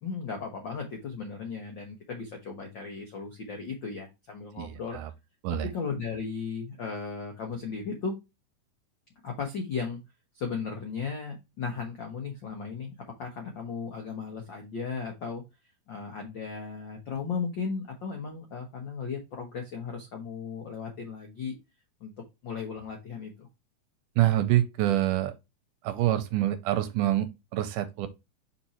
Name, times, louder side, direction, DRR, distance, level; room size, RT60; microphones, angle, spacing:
voice 1, 0.0-5.0 5.7-8.1 9.2-10.0 10.3-12.9 13.2-15.4 15.9-21.5 22.0-22.1 22.4-23.5, left 5 dB, 75° left, 1.0 m, -36 dB
voice 2, 4.6-5.1 5.4-5.7 24.2-25.3 25.8-28.1, right 13 dB, 80° right, 2.1 m, -26 dB
5.6 x 4.5 x 4.2 m
omnidirectional pair, 3.9 m